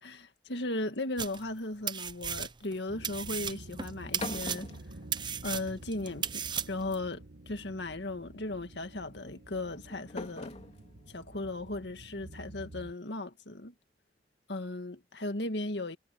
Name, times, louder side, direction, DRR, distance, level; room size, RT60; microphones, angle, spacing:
voice 1, 0.0-4.7 5.4-10.5 11.1-13.7 14.5-16.0, left 2 dB, 75° left, 1.9 m, -37 dB
sound 1, 1.2-1.6 1.9-2.8 3.0-7.0, right 8 dB, 25° right, 0.6 m, -35 dB
sound 2, 1.4-1.9 3.8-5.7 6.1-6.7 7.8-8.1 9.3-12.5, left 2 dB, 40° left, 3.2 m, -45 dB
sound 3, 2.9-12.9, right 1 dB, 75° right, 1.4 m, -50 dB
head